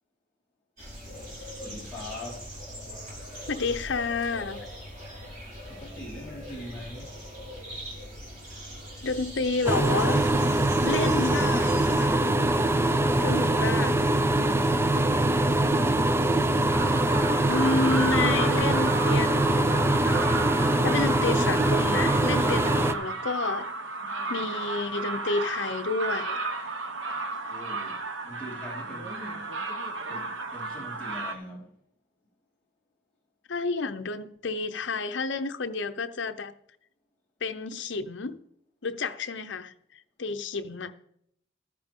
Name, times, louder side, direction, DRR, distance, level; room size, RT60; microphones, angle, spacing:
sound 1, 0.8-12.1, equal, 45° right, 4.9 m, -41 dB
voice 1, 1.6-2.6 5.7-7.2 27.4-29.5 30.1-31.8, left 1 dB, 5° left, 4.5 m, -43 dB
voice 2, 3.5-4.7 9.0-10.3 10.8-12.3 13.2-14.1 17.5-20.3 20.8-23.7 24.3-26.5 33.5-36.5 37.4-38.4 38.8-40.9, left 3 dB, 65° left, 0.8 m, -30 dB
sound 2, 9.7-22.9, right 1 dB, 15° right, 0.4 m, -23 dB
sound 3, 16.7-31.3, right 3 dB, 75° right, 1.3 m, -33 dB
13.5 x 10.5 x 3.7 m
head